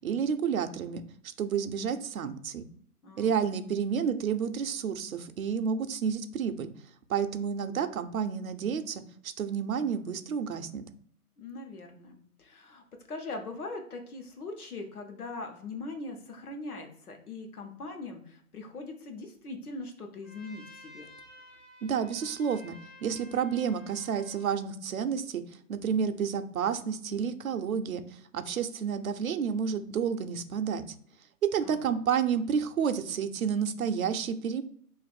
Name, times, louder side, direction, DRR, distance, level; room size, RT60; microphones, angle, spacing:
voice 1, 0.0-2.6 3.2-6.7 7.1-10.9 21.8-22.7 23.0-25.4 25.7-28.0 28.3-30.8 31.5-34.6, right 7 dB, 65° right, 8 dB, 0.5 m, -30 dB
voice 2, 3.0-3.4 11.4-21.1 31.6-32.0, left 3 dB, 70° left, 4 dB, 1.0 m, -41 dB
Trumpet, 20.2-24.5, left 1 dB, ahead, 0.3 m, -53 dB
2.6 x 2.5 x 4.1 m, 0.62 s
hypercardioid pair, 165°, 46 cm